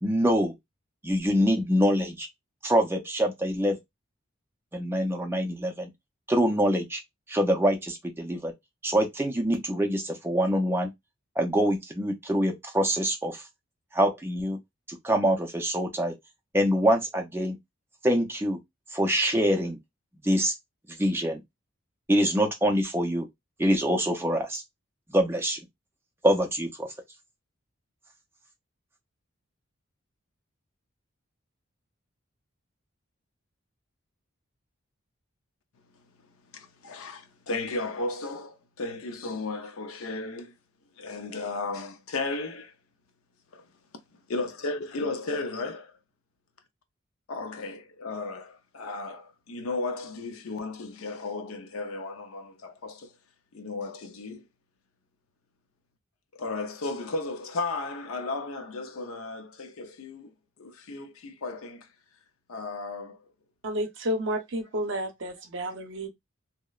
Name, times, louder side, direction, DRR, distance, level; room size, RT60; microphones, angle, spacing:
voice 1, 0.0-0.5 1.0-2.3 2.6-3.8 4.7-5.9 6.3-7.0 7.3-8.5 8.8-10.9 11.4-13.4 13.9-14.6 14.9-16.1 16.5-17.6 18.0-18.6 18.9-19.8 20.2-20.5 20.9-21.4 22.1-23.3 23.6-24.6 25.1-25.6 26.2-26.9, equal, 10° right, 0.4 m, -25 dB
voice 2, 36.5-40.5 41.0-42.7 43.5-43.6 44.3-45.9 47.3-53.1 53.5-54.4 56.3-60.3 60.6-61.9 62.5-63.2, left 3 dB, 85° left, 0.5 m, -34 dB
voice 3, 63.6-66.1, equal, 60° right, 0.6 m, -31 dB
2.8 x 2.0 x 2.3 m
head